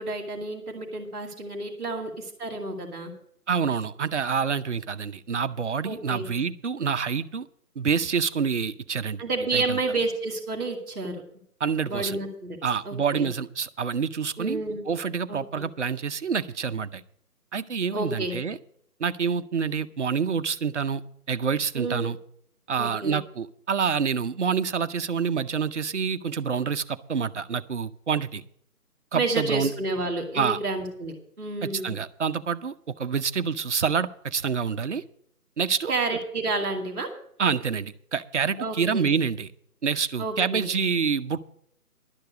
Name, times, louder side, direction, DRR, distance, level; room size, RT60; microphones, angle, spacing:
voice 1, 0.0-3.1 5.8-6.2 9.2-11.2 11.9-12.6 12.8-13.3 14.4-14.8 15.3-15.6 17.9-18.3 21.7-22.1 22.8-23.2 29.1-31.9 35.9-37.1 38.6-39.0 40.2-40.6, right 3 dB, 5° right, -11 dB, 0.9 m, -30 dB
voice 2, 3.5-7.5 7.8-9.2 9.5-9.8 11.6-12.2 12.6-17.0 17.5-18.6 19.0-21.0 21.3-22.2 22.7-28.4 29.1-29.7 30.3-30.6 31.6-35.0 35.6-35.9 37.4-39.5 39.8-41.4, right 6 dB, 50° right, 10 dB, 0.7 m, -27 dB
11.5 x 6.6 x 8.1 m, 0.68 s
figure-of-eight pair, 160°, 47 cm